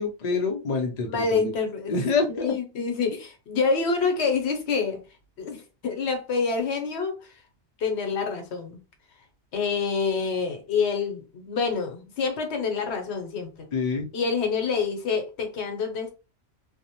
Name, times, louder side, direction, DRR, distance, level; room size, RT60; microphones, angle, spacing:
voice 1, 0.0-1.5 1.9-2.5 13.7-14.1, left 4 dB, 50° left, 0.5 m, -26 dB
voice 2, 1.1-2.0 2.3-5.0 5.4-7.2 7.8-8.8 9.5-13.7 14.1-16.1, left 5 dB, 75° left, 1.0 m, -27 dB
2.6 x 2.0 x 2.8 m
omnidirectional pair, 1.1 m